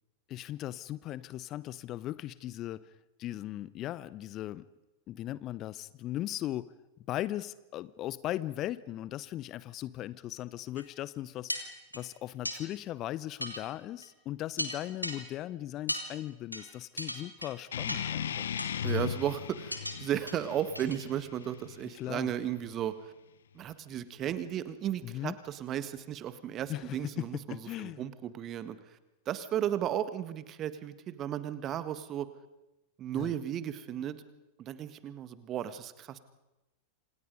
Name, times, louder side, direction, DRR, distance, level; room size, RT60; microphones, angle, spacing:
voice 1, 0.3-2.9 3.2-4.6 5.1-6.7 7.1-18.5 21.9-22.3 25.0-25.4 26.7-28.0 33.2-33.3, left 14 dB, 35° left, 19 dB, 0.8 m, -38 dB
sound 1, 10.8-10.9 11.5-12.0 12.5-12.6 13.4-13.6 14.0-14.1 14.6-15.2 15.9-16.1 16.5-16.7 17.0-17.5 17.9-18.2 18.6-19.0 19.7-20.0 20.3-20.4 20.8-21.1 21.4-21.5, left 1 dB, 90° left, 2.9 m, -36 dB
sound 2, 17.7-22.8, left 8 dB, 65° left, 1.1 m, -37 dB
voice 2, 18.8-23.0 23.5-28.8 29.2-32.3 33.0-34.2 34.6-36.2, right 10 dB, 30° right, 13 dB, 1.6 m, -35 dB
27.5 x 27.5 x 5.4 m, 0.98 s
figure-of-eight pair, 90°, 0 cm